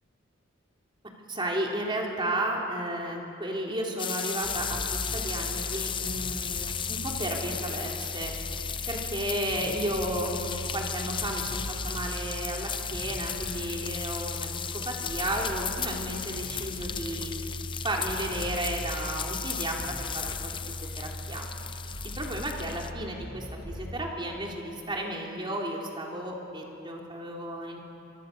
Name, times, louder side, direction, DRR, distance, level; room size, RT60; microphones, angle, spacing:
voice 1, 1.3-8.3 8.9-17.3 17.8-21.4 22.0-27.8, right 1 dB, 25° right, -1 dB, 3.3 m, -33 dB
sound 1, 4.0-22.9, left 8 dB, 25° left, 0.7 m, -35 dB
sound 2, 4.4-24.1, equal, 55° left, 3.4 m, -39 dB
25.0 x 24.5 x 6.8 m, 2.9 s
head